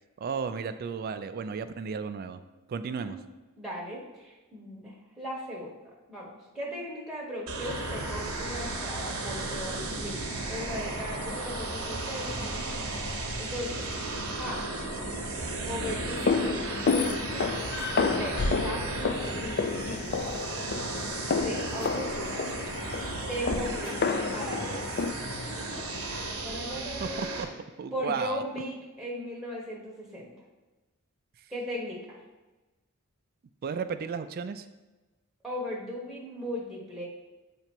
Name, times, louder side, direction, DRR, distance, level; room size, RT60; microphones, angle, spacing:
voice 1, 0.2-2.4 2.7-3.2 27.0-27.5 27.8-28.4 33.6-34.7, right 6 dB, 45° right, 10 dB, 0.3 m, -34 dB
voice 2, 2.8-3.2 3.6-5.7 6.1-10.2 10.5-12.5 12.8-13.9 14.4-14.6 15.7-17.6 17.9-20.4 21.4-22.5 23.1-25.0 26.4-27.4 27.9-30.3 31.5-32.2 35.4-37.1, equal, 5° right, -3 dB, 1.1 m, -38 dB
sound 1, 7.5-27.4, right 3 dB, 75° right, 0.9 m, -36 dB
sound 2, 7.6-26.4, left 2 dB, 80° left, 0.7 m, -41 dB
sound 3, 15.8-25.1, left 4 dB, 50° left, 0.4 m, -30 dB
8.0 x 2.9 x 4.4 m, 1.1 s
head